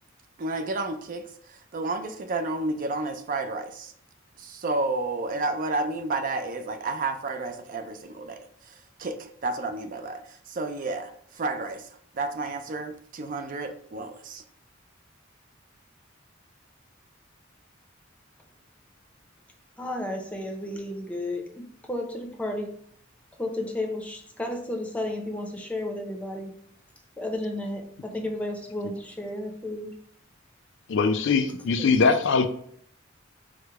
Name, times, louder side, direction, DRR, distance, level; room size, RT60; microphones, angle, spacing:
voice 1, 0.4-3.9 4.4-8.4 8.7-11.9 12.1-14.4, right 2 dB, 45° right, 7 dB, 0.4 m, -31 dB
voice 2, 19.8-22.7 23.4-26.5 27.2-29.9 31.8-32.2, left 1 dB, 5° left, 1 dB, 0.6 m, -33 dB
voice 3, 30.9-32.5, left 4 dB, 65° left, 8 dB, 0.4 m, -21 dB
4.8 x 2.1 x 4.6 m, 0.64 s
head